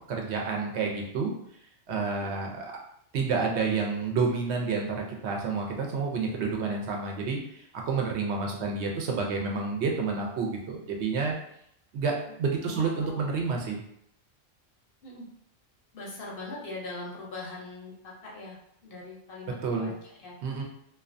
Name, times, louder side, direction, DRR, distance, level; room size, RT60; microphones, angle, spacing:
voice 1, 0.1-1.3 1.9-2.7 3.1-11.3 11.9-13.8 19.5-19.9 20.4-20.6, right 4 dB, 65° right, 0 dB, 0.8 m, -29 dB
voice 2, 12.6-13.2 15.0-15.3 15.9-17.9 18.2-18.6 18.8-20.3, left 2 dB, 55° left, -3 dB, 0.7 m, -41 dB
2.3 x 2.2 x 2.5 m, 0.73 s
omnidirectional pair, 1.3 m